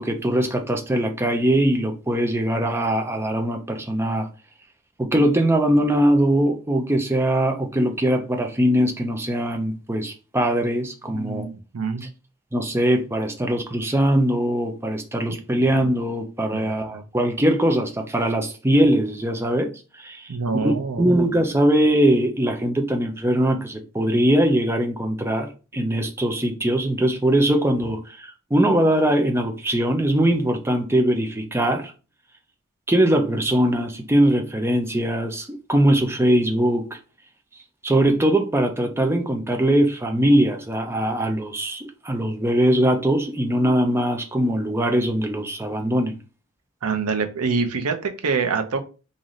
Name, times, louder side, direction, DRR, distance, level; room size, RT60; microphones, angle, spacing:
voice 1, 0.0-4.3 5.0-11.5 12.0-12.1 12.5-19.7 20.0-20.3 20.6-31.9 32.9-37.0 37.8-46.2, right 1 dB, 10° right, 0.5 m, -21 dB
voice 2, 11.1-12.1 15.3-15.4 16.5-17.0 20.3-21.1 46.8-48.8, right 5 dB, 85° right, 0.7 m, -26 dB
3.9 x 2.6 x 3.1 m
head